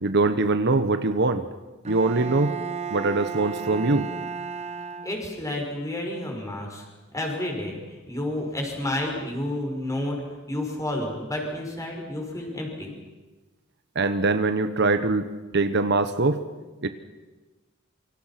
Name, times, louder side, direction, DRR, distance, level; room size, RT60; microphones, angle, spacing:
voice 1, 0.0-1.5 1.9-2.5 2.9-4.1 13.9-16.4 16.8-16.9, right 3 dB, 55° right, 10 dB, 1.1 m, -23 dB
Bowed string instrument, 1.8-5.6, right 6 dB, 35° right, 1.0 m, -34 dB
voice 2, 5.0-6.8 7.1-12.9, left 1 dB, 15° left, 1 dB, 5.9 m, -30 dB
27.0 x 24.5 x 5.9 m, 1.2 s
head